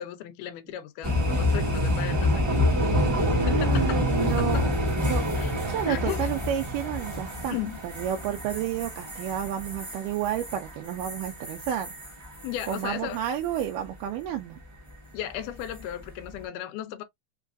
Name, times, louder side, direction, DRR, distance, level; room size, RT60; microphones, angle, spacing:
voice 1, 0.0-2.6 3.1-4.1 4.4-4.7 5.4-5.5 5.8-6.3 7.5-7.8 12.4-13.2 15.1-17.0, left 11 dB, 85° left, 2.1 m, -35 dB
sound 1, 1.0-12.9 13.2-13.6 15.6-15.9, left 1 dB, 15° right, 0.6 m, -27 dB
voice 2, 3.4-4.7 5.0-7.6 7.8-11.9 12.7-14.6, right 10 dB, 85° right, 2.1 m, -31 dB
5.3 x 2.4 x 2.4 m
omnidirectional pair, 3.8 m